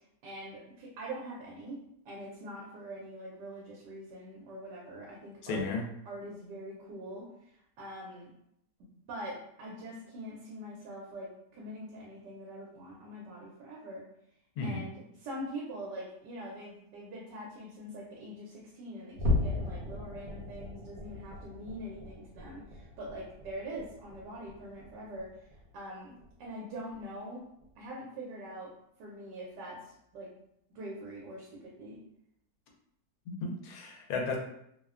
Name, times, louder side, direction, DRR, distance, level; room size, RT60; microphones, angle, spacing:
voice 1, 0.2-5.6 6.0-8.3 9.1-14.1 14.6-26.1 26.4-27.4 27.8-28.7 29.0-30.3 30.7-32.0, right 1 dB, 90° right, -4 dB, 1.3 m, -43 dB
voice 2, 5.4-5.8 14.6-14.8 33.3-34.4, left 4 dB, 70° left, 0 dB, 1.0 m, -34 dB
sound 1, 19.1-25.8 26.2-26.5 26.9-27.0 27.6-27.7, left 2 dB, 65° right, 1.0 m, -37 dB
3.0 x 2.1 x 2.3 m, 0.75 s
omnidirectional pair, 1.8 m